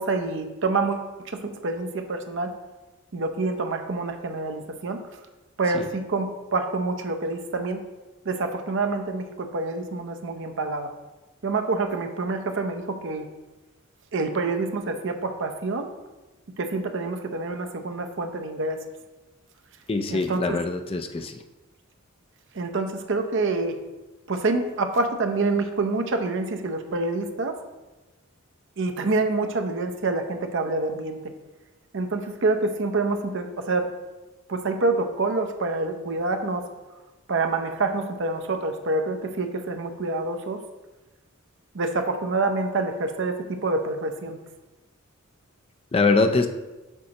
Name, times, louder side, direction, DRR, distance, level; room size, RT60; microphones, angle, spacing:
voice 1, 0.0-2.5 3.1-5.0 5.6-7.8 8.3-10.9 11.4-13.2 14.1-15.9 16.6-18.8 20.1-20.6 22.5-23.8 24.3-27.6 28.8-31.2 31.9-33.9 34.5-36.6 37.3-40.6 41.7-44.4, right 3 dB, 60° right, 6 dB, 0.7 m, -27 dB
voice 2, 19.9-21.3 45.9-46.5, left 3 dB, 25° left, 7 dB, 0.4 m, -23 dB
8.1 x 6.3 x 2.9 m, 1.1 s
head